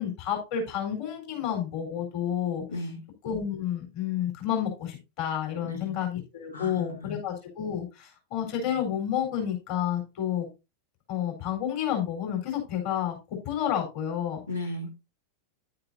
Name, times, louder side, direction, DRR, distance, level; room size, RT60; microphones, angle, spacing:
voice 1, 0.0-2.6 3.2-10.5 11.1-13.2 13.4-14.4, left 9 dB, 45° left, 4.3 m, -30 dB
voice 2, 2.7-3.0 5.6-5.9 6.5-7.2 14.5-14.9, left 1 dB, 80° left, 2.4 m, -35 dB
10.5 x 8.9 x 2.7 m
figure-of-eight pair, 90°, 0 cm